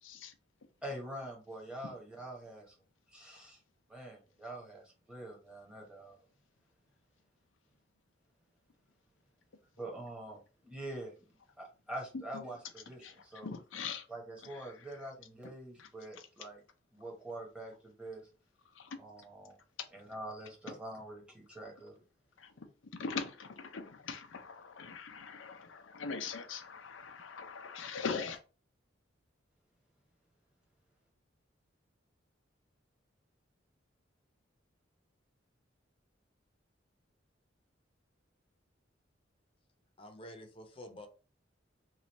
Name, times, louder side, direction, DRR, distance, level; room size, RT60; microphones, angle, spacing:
voice 1, 0.0-0.3 12.1-12.2 13.0-13.1 13.4-14.1 14.5-14.7 15.8-15.9 18.7-19.0 22.4-22.7 22.9-28.4, left 5 dB, 80° left, 0.6 m, -41 dB
voice 2, 0.8-2.7 3.1-3.6 3.9-6.2 9.8-13.5 14.1-16.6 16.9-18.3 19.0-19.6 19.9-22.0, right 1 dB, 5° right, 1.0 m, -45 dB
voice 3, 40.0-41.1, left 1 dB, 30° left, 0.7 m, -49 dB
3.1 x 2.4 x 4.1 m
head